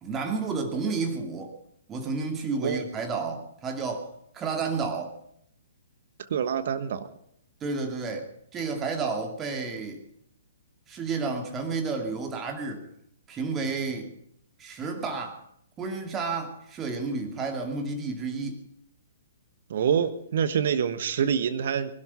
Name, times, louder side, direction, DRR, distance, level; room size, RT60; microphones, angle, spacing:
voice 1, 0.0-1.6 1.9-4.1 4.3-5.1 7.6-10.0 10.9-12.9 13.3-14.1 14.6-15.4 15.8-18.6, right 4 dB, 20° right, 4 dB, 2.5 m, -31 dB
voice 2, 6.3-7.1 19.7-22.0, right 8 dB, 55° right, 12 dB, 1.2 m, -26 dB
20.0 x 12.0 x 5.7 m, 0.72 s
figure-of-eight pair, 120°, 0 cm